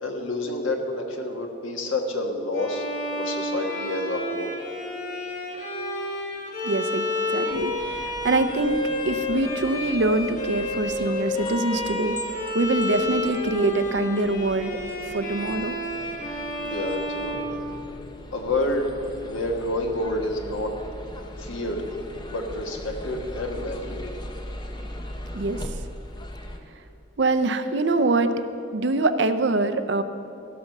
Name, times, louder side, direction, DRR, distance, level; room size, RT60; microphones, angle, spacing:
voice 1, 0.0-2.8 3.2-4.5 16.6-17.6 18.3-18.9 19.2-20.7 21.4-21.8 22.3-24.1, left 2 dB, 85° left, 3 dB, 1.4 m, -29 dB
Bowed string instrument, 2.5-18.3, left 1 dB, 40° left, 1.5 m, -30 dB
voice 2, 6.6-7.1 7.3-8.8 9.1-12.2 12.5-14.8 15.1-15.8 25.3-25.6 27.2-28.3 28.7-30.0, right 2 dB, 60° right, 10 dB, 0.6 m, -24 dB
sound 1, 7.5-26.6, left 1 dB, 20° left, 0.7 m, -40 dB
15.5 x 6.0 x 6.6 m, 2.7 s
head